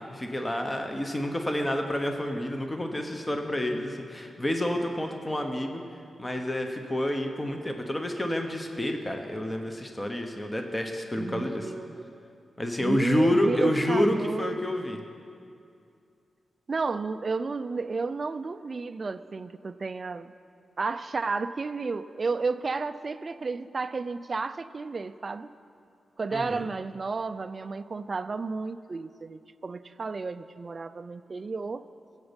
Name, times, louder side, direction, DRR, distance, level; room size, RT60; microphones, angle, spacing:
voice 1, 0.0-5.8 6.2-11.7 12.6-15.0 26.3-26.7, left 1 dB, 15° left, 4 dB, 0.8 m, -29 dB
voice 2, 11.2-12.2 12.8-14.7 16.7-20.3 20.8-25.5 26.2-31.8, right 4 dB, 35° right, 13 dB, 0.4 m, -32 dB
21.5 x 8.1 x 5.2 m, 2.5 s
wide cardioid pair, 165°, 0 cm